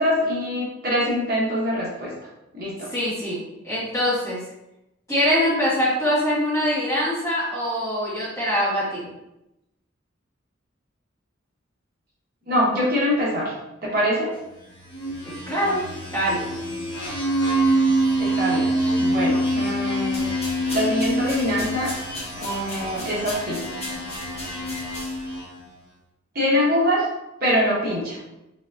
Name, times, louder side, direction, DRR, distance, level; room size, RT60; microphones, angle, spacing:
voice 1, 0.0-2.1 2.5-2.9 12.5-13.5 13.8-14.3 18.2-18.7 19.0-20.2 20.7-21.9 22.3-23.6 26.3-27.1 27.4-28.2, equal, 45° right, -5 dB, 0.9 m, -24 dB
voice 2, 2.9-4.4 5.1-9.1 15.2-15.8 16.1-16.4, equal, 15° left, -9 dB, 1.4 m, -23 dB
sound 1, 14.8-25.7, right 1 dB, 60° left, 1.1 m, -25 dB
sound 2, 20.0-25.4, left 1 dB, 30° left, 1.1 m, -38 dB
3.9 x 3.1 x 2.3 m, 0.91 s
head